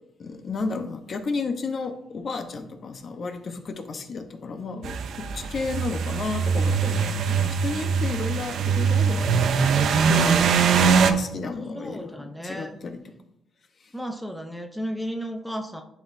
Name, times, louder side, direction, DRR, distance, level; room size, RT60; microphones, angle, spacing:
voice 1, 0.2-12.9 13.8-13.9, left 4 dB, 40° left, 6 dB, 0.8 m, -33 dB
sound 1, 4.8-11.1, right 6 dB, 65° right, 0.5 m, -22 dB
voice 2, 11.7-12.8 13.9-15.8, equal, ahead, 4 dB, 0.6 m, -33 dB
11.0 x 4.3 x 2.6 m, 0.80 s
cardioid pair, 120°, 0 cm